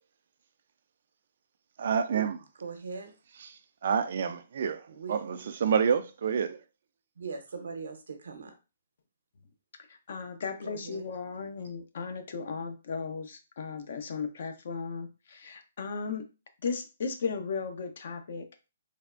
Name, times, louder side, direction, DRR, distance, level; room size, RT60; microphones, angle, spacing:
voice 1, 1.8-2.4 3.4-6.6, right 7 dB, 60° right, 0.3 m, -29 dB
voice 2, 2.6-3.2 4.9-5.4 7.2-8.5 10.6-11.1, right 5 dB, 80° right, 0.7 m, -41 dB
voice 3, 10.1-16.2 16.6-18.4, left 5 dB, 60° left, 0.6 m, -36 dB
3.3 x 2.1 x 2.4 m
hypercardioid pair, 150°, 0 cm